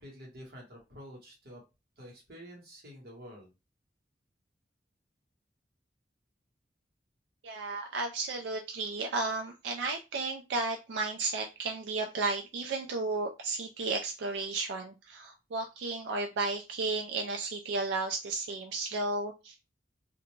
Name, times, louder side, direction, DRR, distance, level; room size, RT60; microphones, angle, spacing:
voice 1, 0.0-1.6 2.0-3.5, equal, 60° right, -1 dB, 1.1 m, -49 dB
voice 2, 7.4-19.6, right 3 dB, 85° right, 3 dB, 0.3 m, -33 dB
2.4 x 2.1 x 3.0 m, 0.27 s
head